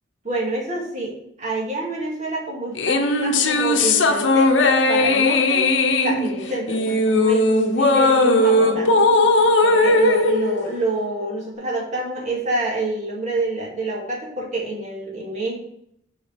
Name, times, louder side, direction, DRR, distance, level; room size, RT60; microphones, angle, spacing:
voice 1, 0.2-5.6 6.0-7.5 7.8-9.0 9.6-15.6, right 2 dB, 40° right, -3 dB, 2.1 m, -27 dB
sound 1, 2.8-11.4, left 2 dB, 80° left, 0.8 m, -18 dB
8.2 x 4.7 x 3.4 m, 0.73 s
head